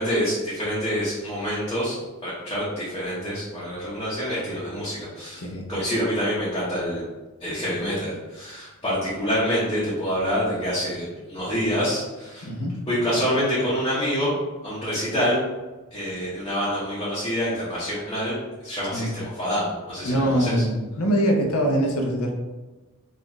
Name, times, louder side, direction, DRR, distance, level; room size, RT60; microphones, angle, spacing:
voice 1, 0.0-2.0 2.2-7.0 7.4-12.5 12.9-14.3 14.6-15.4 15.9-18.3 18.6-20.6, equal, 20° left, -10 dB, 1.0 m, -26 dB
voice 2, 12.4-12.8 18.9-19.1 20.0-22.3, equal, 80° left, 1 dB, 0.7 m, -23 dB
4.1 x 2.6 x 3.0 m, 1.2 s
head